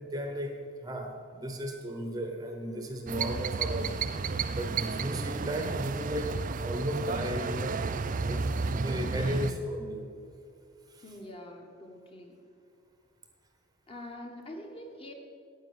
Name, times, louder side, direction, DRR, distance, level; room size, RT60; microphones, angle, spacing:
voice 1, 0.0-3.9 4.5-7.8 8.3-10.1 10.9-11.0, equal, 15° right, 4 dB, 0.9 m, -35 dB
sound 1, 3.1-9.5, right 4 dB, 40° right, 0.4 m, -32 dB
voice 2, 11.0-12.4 13.9-15.1, left 1 dB, 25° left, 3 dB, 1.2 m, -45 dB
10.0 x 8.7 x 8.0 m, 2.4 s
head